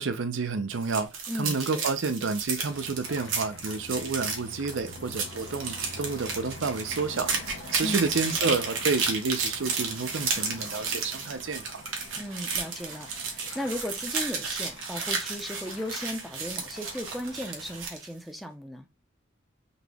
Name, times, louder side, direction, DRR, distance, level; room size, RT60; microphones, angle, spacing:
voice 1, 0.0-1.1 1.3-7.3 7.7-11.8, right 4 dB, 70° right, 0.6 m, -30 dB
sound 1, 0.7-18.1, right 5 dB, 90° right, 1.2 m, -33 dB
voice 2, 1.3-1.8 7.8-8.1 12.2-18.9, equal, ahead, 0.5 m, -36 dB
sound 2, 2.7-17.8, left 2 dB, 75° left, 0.9 m, -45 dB
4.0 x 2.8 x 3.4 m
head